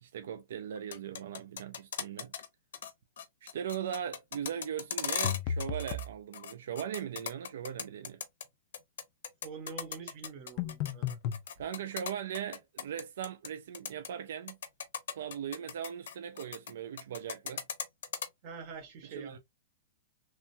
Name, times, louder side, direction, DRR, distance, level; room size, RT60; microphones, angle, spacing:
voice 1, 0.0-2.3 3.4-8.2 11.6-14.6 15.1-17.6 19.1-19.4, right 9 dB, 60° right, 0.4 m, -39 dB
sound 1, 0.8-2.5 2.7-2.9 3.2-6.1 6.3-8.4 8.7-13.5 13.7-14.1 14.5-16.7 17.0-18.3, left 8 dB, 75° left, 0.6 m, -38 dB
sound 2, 5.2-6.1 10.6-11.4, left 7 dB, 30° left, 0.3 m, -34 dB
voice 2, 9.4-11.2 18.4-19.4, right 5 dB, 30° right, 0.7 m, -45 dB
3.1 x 2.2 x 2.5 m
supercardioid pair, 175°, 0 cm